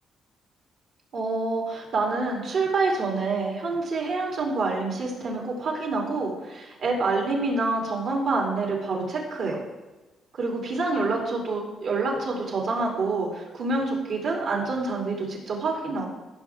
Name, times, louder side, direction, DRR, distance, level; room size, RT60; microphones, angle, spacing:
voice 1, 1.1-9.6 10.3-16.1, right 3 dB, 70° right, -1 dB, 3.0 m, -27 dB
16.0 x 6.1 x 3.6 m, 1.1 s
cardioid pair, 90°, 0 cm